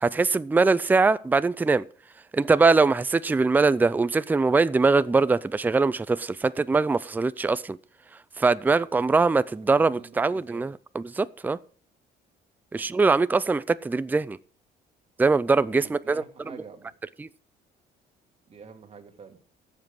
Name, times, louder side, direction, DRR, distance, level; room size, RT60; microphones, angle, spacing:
voice 1, 0.0-1.8 2.3-7.8 8.4-11.6 12.7-14.4 15.2-16.2 17.2-17.3, right 4 dB, 10° right, 0.4 m, -22 dB
voice 2, 9.4-10.7 12.7-13.1 15.7-16.9 18.5-19.4, right 5 dB, 35° right, 2.5 m, -47 dB
13.0 x 7.5 x 6.0 m
cardioid pair, 110°, 17 cm